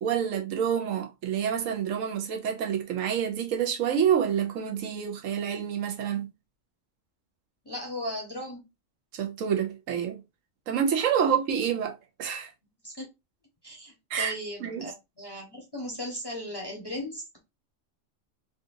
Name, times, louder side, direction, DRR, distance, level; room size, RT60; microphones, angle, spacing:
voice 1, 0.0-6.3 9.1-10.2 10.7-12.5 14.1-14.3 14.6-14.9, right 8 dB, 75° right, 1.0 m, -28 dB
voice 2, 7.6-8.6 11.2-11.3 12.8-13.1 13.6-17.2, equal, 20° left, 0.8 m, -37 dB
3.8 x 2.4 x 2.5 m
omnidirectional pair, 1.4 m